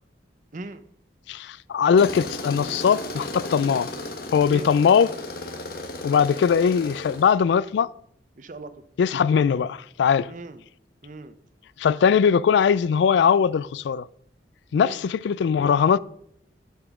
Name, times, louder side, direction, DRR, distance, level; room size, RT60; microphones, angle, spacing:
voice 1, 0.5-0.8 4.5-4.7 8.4-8.8 10.3-10.6 11.0-11.4 14.7-15.0, right 2 dB, 45° right, 0.6 m, -39 dB
voice 2, 1.3-3.9 4.3-5.1 6.0-7.9 9.0-10.3 11.8-14.1 14.7-16.0, left 7 dB, 75° left, 0.3 m, -20 dB
Tools, 2.0-7.3, left 2 dB, 55° left, 1.2 m, -35 dB
8.0 x 8.0 x 3.6 m
head